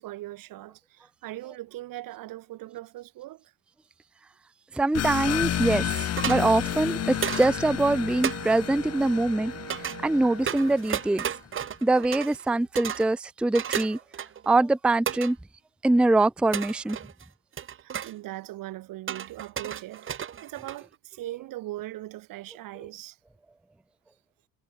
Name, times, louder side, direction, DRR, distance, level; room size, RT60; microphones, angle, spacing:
voice 1, 0.0-3.5 17.7-20.1 20.4-23.2, right 16 dB, 75° right, 3.8 m, -40 dB
voice 2, 4.7-9.5 10.0-11.3 11.8-14.0 14.5-15.4 15.8-17.0, right 2 dB, 5° right, 0.5 m, -23 dB
sound 1, 4.9-11.2, left 11 dB, 45° left, 2.2 m, -31 dB
sound 2, 6.2-6.4 7.2-7.5 8.2-8.4 9.7-10.0 10.5-12.5 12.8-13.1 13.5-14.5 15.1-15.3 16.5-17.2 17.6-18.1 19.1-20.9, right 9 dB, 35° right, 3.0 m, -33 dB
Wind instrument woodwind instrument, 6.2-10.8, right 12 dB, 55° right, 3.3 m, -43 dB
cardioid pair, 165°, 33 cm